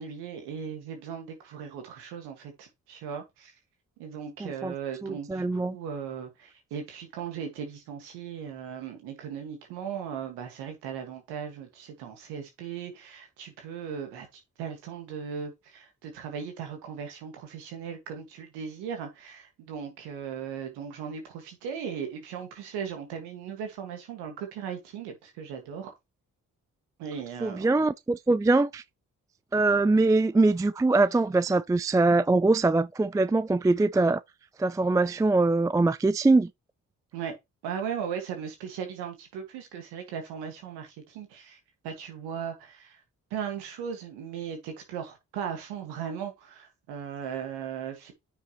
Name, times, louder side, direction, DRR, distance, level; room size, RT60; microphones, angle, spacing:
voice 1, 0.0-3.5 4.0-25.9 27.0-27.7 37.1-37.3 37.6-43.0 43.3-48.1, right 7 dB, 85° right, 1.9 m, -37 dB
voice 2, 4.4-4.7 5.0-5.8 27.4-28.8 29.5-34.2 34.6-36.5, right 3 dB, 10° right, 0.4 m, -23 dB
9.2 x 5.7 x 3.0 m
hypercardioid pair, 40°, 38 cm